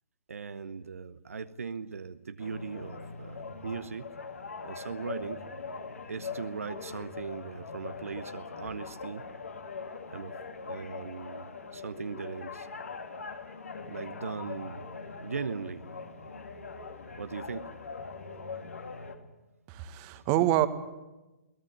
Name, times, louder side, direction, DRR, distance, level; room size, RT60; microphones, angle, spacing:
voice 1, 0.3-4.2 4.6-5.4 6.1-9.3 10.1-10.4 10.6-12.7 13.9-14.9 15.2-15.9 17.2-17.7 20.0-20.3, right 5 dB, 70° right, 11 dB, 1.0 m, -39 dB
sound 1, 2.4-19.2, left 4 dB, 70° left, 2.8 m, -42 dB
voice 2, 19.7-20.7, right 14 dB, 30° right, 11 dB, 1.6 m, -26 dB
22.0 x 18.5 x 9.7 m, 1.1 s
figure-of-eight pair, 125°, 8 cm